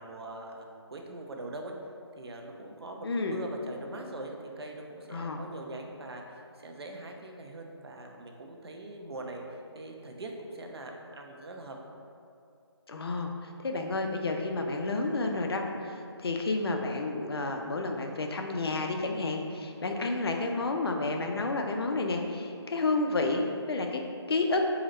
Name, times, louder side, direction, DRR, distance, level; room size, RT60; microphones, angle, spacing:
voice 1, 0.0-1.7 2.2-11.8, right 2 dB, 65° right, 2 dB, 0.5 m, -42 dB
voice 2, 3.0-3.4 5.1-5.4 12.9-24.0 24.3-24.6, left 3 dB, 60° left, 3 dB, 0.4 m, -30 dB
3.8 x 2.1 x 4.1 m, 2.5 s
hypercardioid pair, 170°, 15 cm